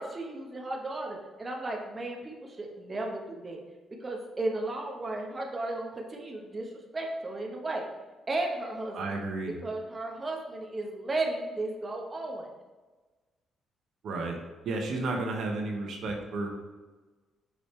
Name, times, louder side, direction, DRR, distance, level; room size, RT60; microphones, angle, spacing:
voice 1, 0.0-3.6 4.0-7.8 8.3-9.2 9.6-12.5, right 2 dB, 30° right, 0 dB, 1.2 m, -34 dB
voice 2, 8.9-9.5 14.0-14.4 14.6-16.5, right 2 dB, 70° right, 1 dB, 1.0 m, -32 dB
5.9 x 5.0 x 3.3 m, 1.3 s
cardioid pair, 90°, 0 cm